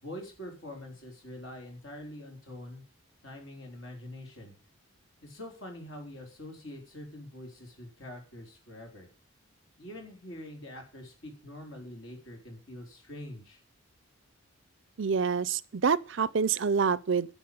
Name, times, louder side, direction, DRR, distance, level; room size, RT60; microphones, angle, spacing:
voice 1, 0.0-2.8 3.2-4.5 5.2-9.1 9.8-13.6, left 1 dB, 60° left, 4.1 m, -44 dB
voice 2, 15.0-17.3, right 6 dB, 55° right, 0.5 m, -27 dB
10.5 x 7.3 x 7.9 m
head